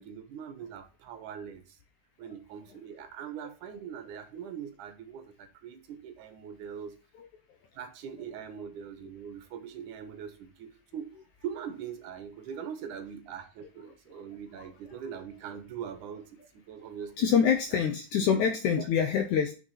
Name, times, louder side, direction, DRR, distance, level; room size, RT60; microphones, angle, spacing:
voice 1, 0.0-1.8 2.2-6.9 7.7-11.1 11.4-16.4 16.7-17.3 17.7-17.8 18.7-18.9, right 8 dB, 65° right, 2.3 m, -42 dB
voice 2, 17.2-19.5, left 7 dB, 70° left, 1.9 m, -25 dB
6.7 x 6.4 x 5.6 m
omnidirectional pair, 4.6 m